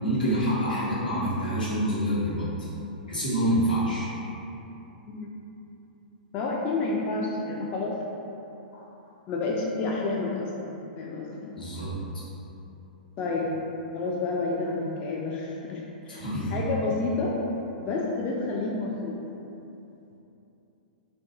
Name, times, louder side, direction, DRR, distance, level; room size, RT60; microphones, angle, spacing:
voice 1, 0.0-2.7 3.1-4.1 11.6-12.0 16.1-16.7, equal, 80° left, -9 dB, 1.1 m, -27 dB
voice 2, 6.3-8.0 9.3-11.5 13.2-13.5 13.9-17.4 17.8-19.2, left 3 dB, 30° left, -3 dB, 0.3 m, -30 dB
2.5 x 2.3 x 3.6 m, 2.9 s
figure-of-eight pair, 105°, 5 cm